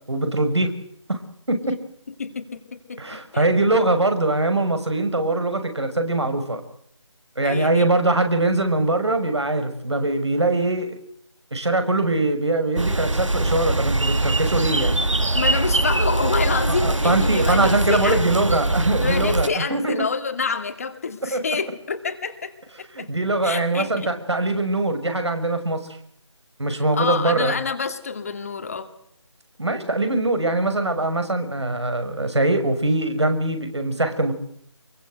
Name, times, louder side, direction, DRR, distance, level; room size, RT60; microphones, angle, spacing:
voice 1, 0.1-0.7 1.1-1.2 1.5-1.8 3.0-6.6 7.4-11.0 11.5-15.0 16.7-19.9 21.3-21.4 22.9-25.8 26.6-27.5 29.6-34.3, right 2 dB, 60° right, 8 dB, 6.2 m, -22 dB
voice 2, 2.2-3.4 7.4-7.8 11.6-11.7 15.3-18.2 19.0-22.5 23.0-23.1 23.4-24.1 26.9-28.9, left 5 dB, 30° left, 6 dB, 2.2 m, -27 dB
sound 1, 12.8-19.5, right 2 dB, 75° right, 1.6 m, -22 dB
27.0 x 23.0 x 8.0 m, 0.67 s
figure-of-eight pair, 160°, 16 cm